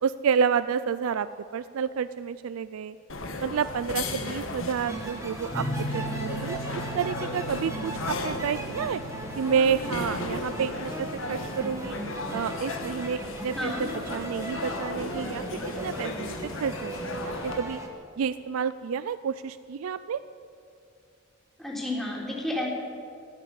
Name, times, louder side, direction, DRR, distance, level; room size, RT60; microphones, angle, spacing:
voice 1, 0.0-3.0 3.4-9.0 9.4-12.0 12.3-17.8 18.2-20.2, right 7 dB, 90° right, 14 dB, 0.4 m, -30 dB
sound 1, 3.1-17.6, left 2 dB, 70° left, 1.4 m, -36 dB
sound 2, 4.9-17.9, right 1 dB, 15° right, 1.4 m, -38 dB
sound 3, 5.5-14.2, equal, 25° left, 2.4 m, -39 dB
voice 2, 13.5-13.9 21.6-22.7, left 1 dB, ahead, -4 dB, 3.4 m, -31 dB
15.0 x 8.7 x 9.8 m, 2.5 s
head